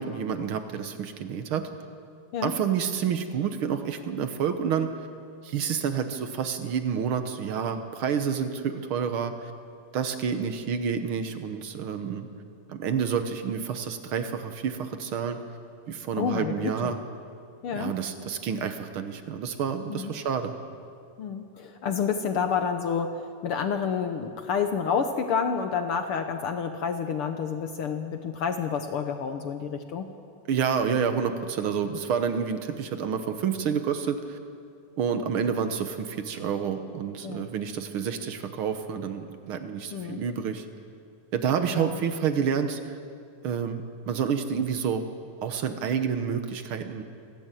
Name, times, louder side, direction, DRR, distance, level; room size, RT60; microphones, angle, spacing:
voice 1, 0.0-1.7 2.4-4.9 5.4-9.5 9.9-12.3 12.7-15.4 15.9-17.0 17.7-20.5 30.5-34.4 35.0-40.7 41.3-43.0 43.4-45.0 45.4-47.0, right 7 dB, 65° right, 8 dB, 1.4 m, -29 dB
voice 2, 16.2-16.9 17.6-17.9 19.9-20.1 21.2-30.1 37.2-37.5 39.9-40.2 41.7-42.0, left 6 dB, 70° left, 7 dB, 1.3 m, -29 dB
28.0 x 12.5 x 9.1 m, 2.4 s
omnidirectional pair, 3.6 m